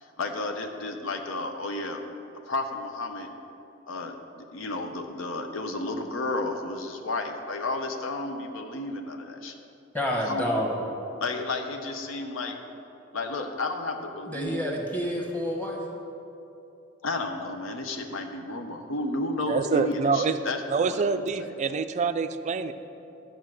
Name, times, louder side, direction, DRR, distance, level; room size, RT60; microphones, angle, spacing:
voice 1, 0.0-2.0 2.5-3.3 3.9-9.5 10.2-10.4 11.2-12.6 13.1-14.8 17.0-20.6 20.9-21.5, left 2 dB, 85° left, 5 dB, 0.7 m, -32 dB
voice 2, 9.9-10.8 14.3-15.8, equal, 10° left, -1 dB, 1.3 m, -28 dB
voice 3, 19.5-20.4 20.7-22.7, right 4 dB, 35° right, 10 dB, 0.3 m, -26 dB
11.5 x 5.0 x 6.3 m, 2.9 s
head